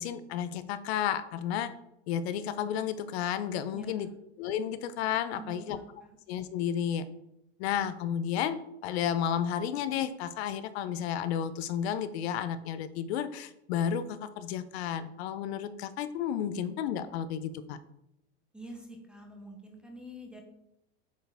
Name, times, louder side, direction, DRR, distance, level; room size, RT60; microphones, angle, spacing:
voice 1, 0.0-1.7 2.1-4.1 4.4-5.8 6.3-7.1 7.6-17.8, left 9 dB, 65° left, 13 dB, 0.6 m, -32 dB
voice 2, 3.7-4.2 5.3-6.2 18.5-20.4, right 1 dB, 5° right, 0 dB, 0.5 m, -47 dB
8.0 x 4.5 x 3.4 m, 0.84 s
supercardioid pair, 165°, 34 cm